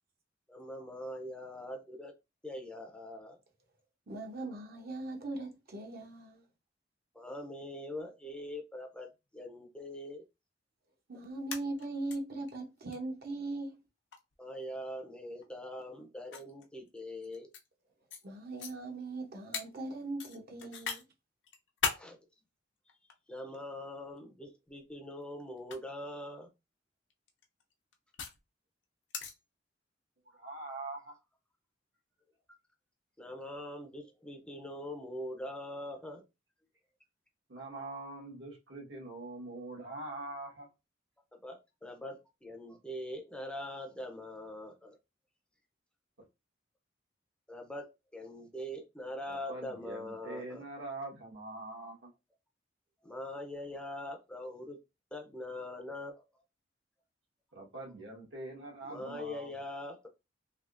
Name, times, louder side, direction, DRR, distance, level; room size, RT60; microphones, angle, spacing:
voice 1, 0.5-2.1 2.4-3.4 7.1-9.1 9.3-10.2 14.4-17.5 21.9-22.2 23.3-26.5 33.2-36.2 41.3-45.0 47.5-50.6 53.0-54.8 55.1-56.2 58.8-60.1, left 1 dB, 5° left, 0.5 m, -43 dB
voice 2, 4.1-6.5 11.1-13.8 18.2-21.0, right 2 dB, 55° right, 0.7 m, -40 dB
sound 1, 11.4-12.1 12.5-12.6 12.9-13.0 14.1-14.3 15.4-15.5 16.3-17.7 18.1-18.2 18.6-18.7 19.5-19.7 20.2-21.0 21.4-22.0 22.9-23.6 24.7-24.9 25.6-25.8 27.1-28.4 29.1-29.3, left 6 dB, 70° left, 0.6 m, -37 dB
voice 3, 30.3-31.1 37.5-40.7 49.3-52.1 57.5-59.5, right 2 dB, 80° right, 1.3 m, -43 dB
3.3 x 2.8 x 2.5 m
head